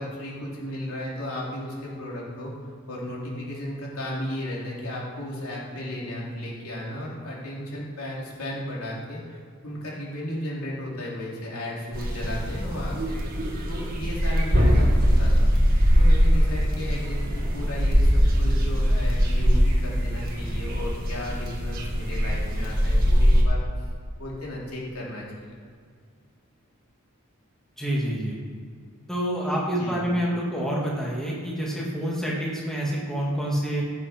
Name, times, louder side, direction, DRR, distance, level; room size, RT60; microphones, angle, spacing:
voice 1, 0.0-2.5 2.9-9.4 9.6-13.2 13.7-15.5 15.9-17.2 17.5-23.6 24.2-25.4 29.8-30.0, left 1 dB, 80° left, -4 dB, 3.2 m, -34 dB
sound 1, 11.9-23.4, equal, 40° right, 2.0 m, -21 dB
voice 2, 27.8-28.4 29.1-33.8, equal, ahead, -5 dB, 2.0 m, -27 dB
16.5 x 7.6 x 4.4 m, 2.1 s
head